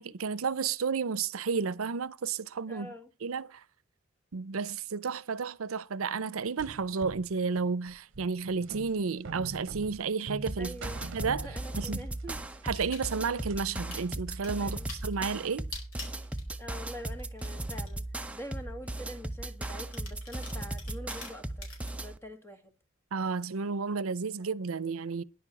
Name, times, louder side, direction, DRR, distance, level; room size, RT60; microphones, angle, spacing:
voice 1, 0.0-2.9 3.2-3.6 4.3-10.7 11.1-11.5 11.8-12.1 12.6-15.7 23.1-25.2, right 5 dB, 90° right, 0.6 m, -32 dB
voice 2, 2.7-3.1 10.6-11.1 11.4-12.4 14.6-14.9 16.6-18.1 18.3-22.7, equal, 10° left, 1.8 m, -45 dB
sound 1, 6.6-12.0 12.3-13.8, right 3 dB, 65° right, 0.9 m, -44 dB
sound 2, 10.5-22.2, right 1 dB, 5° right, 0.7 m, -37 dB
sound 3, 12.7-13.3 13.7-14.1 14.4-16.9 17.2-17.9 18.5-18.6 19.6-21.9, left 3 dB, 85° left, 4.6 m, -45 dB
10.5 x 7.0 x 7.1 m
head